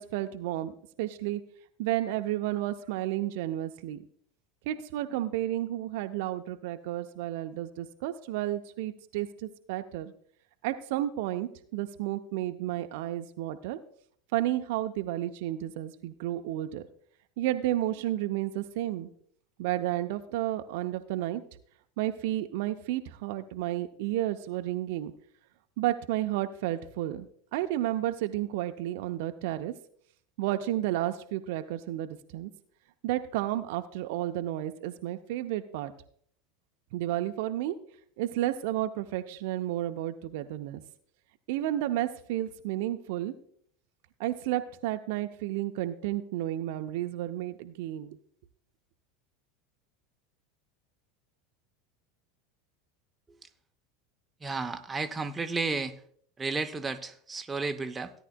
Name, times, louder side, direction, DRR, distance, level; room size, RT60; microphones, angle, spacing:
voice 1, 0.0-1.4 1.8-4.0 4.7-10.1 10.6-13.8 14.3-16.8 17.4-19.1 19.6-21.4 22.0-25.1 25.8-29.7 30.4-32.5 33.0-35.9 36.9-37.8 38.2-40.8 41.5-43.3 44.2-48.2, right 14 dB, 60° right, 0.6 m, -32 dB
voice 2, 54.4-56.0 56.4-58.1, right 3 dB, 15° right, 0.7 m, -32 dB
17.0 x 10.0 x 2.2 m
figure-of-eight pair, 80°, 0 cm